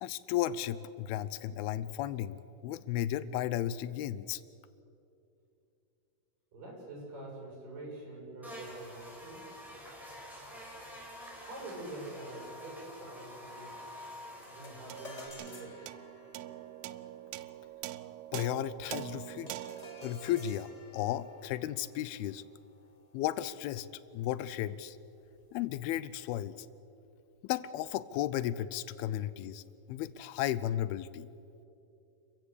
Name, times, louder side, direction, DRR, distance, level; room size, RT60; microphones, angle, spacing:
voice 1, 0.0-4.4 18.3-19.5 20.0-22.4 23.1-23.9 24.1-25.0 25.5-26.7 27.4-29.6 29.9-31.3, left 12 dB, 85° left, 16 dB, 2.6 m, -34 dB
voice 2, 6.5-9.5 11.4-13.7 14.4-15.9, right 2 dB, 60° right, -2 dB, 9.0 m, -46 dB
Buzz, 8.4-15.3, equal, ahead, 4.7 m, -48 dB
sound 1, 14.4-23.9, left 3 dB, 50° left, 0.4 m, -54 dB
sound 2, 14.9-21.5, right 14 dB, 80° right, 2.4 m, -44 dB
29.0 x 15.0 x 8.4 m, 2.7 s
omnidirectional pair, 4.4 m